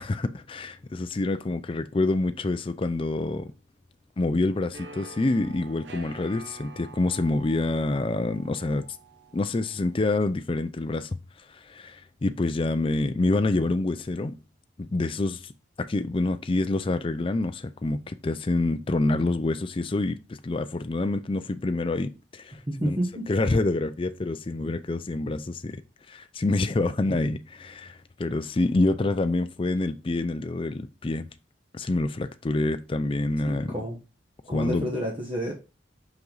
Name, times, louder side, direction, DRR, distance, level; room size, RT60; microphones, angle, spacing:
voice 1, 0.0-3.5 4.2-8.8 9.3-11.1 11.5-14.4 14.8-15.5 15.8-23.0 23.3-25.8 26.1-31.3 31.7-33.7 34.5-34.9, left 2 dB, 25° left, 0.4 m, -27 dB
sound 1, 4.7-10.3, right 3 dB, 60° right, 1.0 m, -47 dB
voice 2, 22.7-23.3 33.4-34.0 34.5-35.5, equal, 25° right, 1.2 m, -29 dB
5.5 x 5.3 x 4.0 m
head